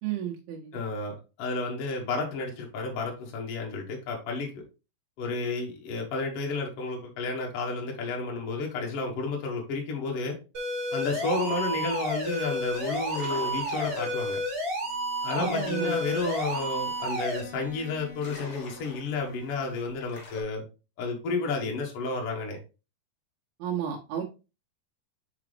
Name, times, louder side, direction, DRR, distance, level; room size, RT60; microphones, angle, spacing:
voice 1, 0.0-0.7 15.4-16.0 16.2-16.4 23.6-24.2, right 9 dB, 75° right, 0 dB, 2.3 m, -32 dB
voice 2, 0.7-4.6 5.2-10.4 10.9-14.4 15.2-20.6 21.0-22.6, left 3 dB, 80° left, 0 dB, 1.3 m, -31 dB
sound 1, 10.5-17.4, equal, 40° right, 1.5 m, -31 dB
sound 2, 11.2-11.7 12.0-12.3 12.6-20.4, left 1 dB, 55° left, 1.8 m, -46 dB
Bowed string instrument, 14.8-20.1, equal, 35° left, 0.4 m, -50 dB
5.9 x 4.9 x 3.3 m, 0.30 s
omnidirectional pair, 5.3 m